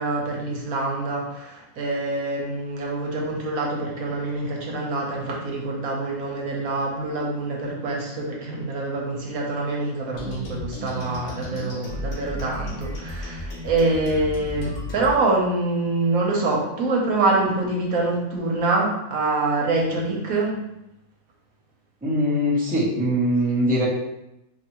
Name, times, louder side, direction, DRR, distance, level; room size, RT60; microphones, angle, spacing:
voice 1, 0.0-20.6, right 2 dB, 80° right, -1 dB, 1.3 m, -25 dB
sound 1, 10.1-15.1, left 1 dB, 65° left, 1.2 m, -34 dB
voice 2, 22.0-23.9, equal, 5° right, -8 dB, 0.9 m, -22 dB
4.5 x 2.8 x 3.0 m, 0.88 s
omnidirectional pair, 1.4 m